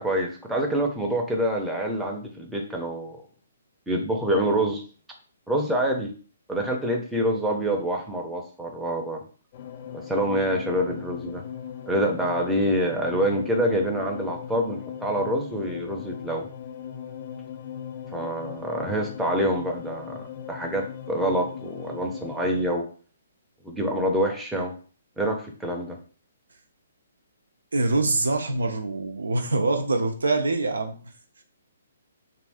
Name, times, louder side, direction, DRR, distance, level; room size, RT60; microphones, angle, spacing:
voice 1, 0.0-3.2 3.9-4.8 5.5-6.1 6.5-9.2 9.9-11.4 11.9-16.5 18.1-22.8 23.6-24.7 25.2-26.0, right 1 dB, 5° right, -1 dB, 0.6 m, -26 dB
sound 1, 9.5-22.7, left 8 dB, 45° left, 0.4 m, -39 dB
voice 2, 27.7-30.9, right 2 dB, 85° right, 5 dB, 0.6 m, -24 dB
2.6 x 2.6 x 3.4 m, 0.40 s
hypercardioid pair, 140°, 0 cm